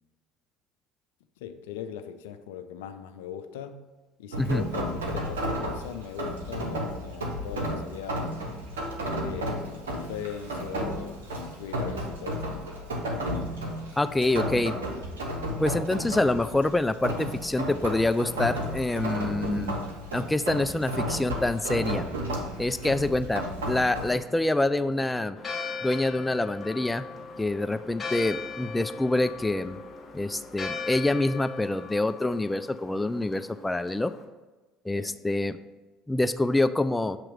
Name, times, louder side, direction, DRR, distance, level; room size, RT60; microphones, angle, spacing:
voice 1, 1.4-3.8 4.2-8.3 9.2-13.1 35.0-35.2, left 9 dB, 80° left, 9 dB, 0.4 m, -40 dB
Rain, 4.3-24.1, equal, 90° right, 0.9 m, -33 dB
voice 2, 14.0-14.7 15.6-19.7 20.1-22.0 22.6-25.4 25.8-27.1 27.4-29.8 30.1-34.1 34.9-35.6 36.1-37.2, left 2 dB, 10° left, 12 dB, 0.3 m, -26 dB
sound 1, 24.1-31.1, left 3 dB, 55° left, 1.7 m, -50 dB
Church bell, 25.4-34.2, left 4 dB, 30° left, 1.3 m, -39 dB
7.6 x 3.0 x 4.9 m, 1.2 s
hypercardioid pair, 65°, 0 cm